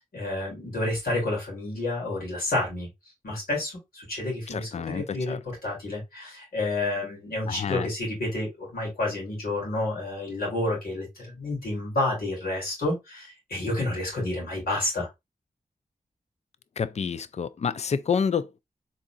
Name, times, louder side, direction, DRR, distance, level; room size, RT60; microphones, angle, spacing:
voice 1, 0.1-2.9 3.2-15.1, left 2 dB, 85° left, 2.7 m, -30 dB
voice 2, 4.5-5.4 7.5-7.9 16.8-18.6, left 6 dB, 45° left, 0.4 m, -29 dB
3.9 x 3.8 x 2.3 m
cardioid pair, 45°, 15 cm